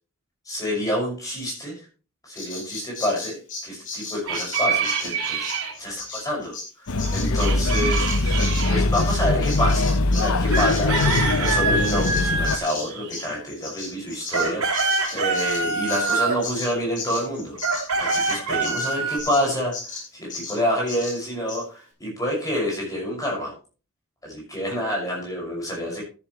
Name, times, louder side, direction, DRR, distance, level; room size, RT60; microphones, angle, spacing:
voice 1, 0.5-1.8 2.2-3.4 3.6-6.5 7.1-17.6 17.9-23.5 24.2-26.0, equal, 15° left, -2 dB, 6.3 m, -28 dB
Bird vocalization bird call bird song, 2.4-10.3 10.5-19.4 19.7-20.0 20.3-20.6 20.9-21.2 21.5-21.6, left 3 dB, 35° left, 4.9 m, -35 dB
sound 1, 4.3-5.7 7.4-8.8 10.5-13.2 14.1-16.5 17.6-19.2, right 4 dB, 80° right, 3.3 m, -25 dB
Male speech man speaking / Child speech kid speaking / Chatter, 6.9-12.6, left 2 dB, 80° left, 0.9 m, -22 dB
13.5 x 11.0 x 3.2 m, 0.36 s
head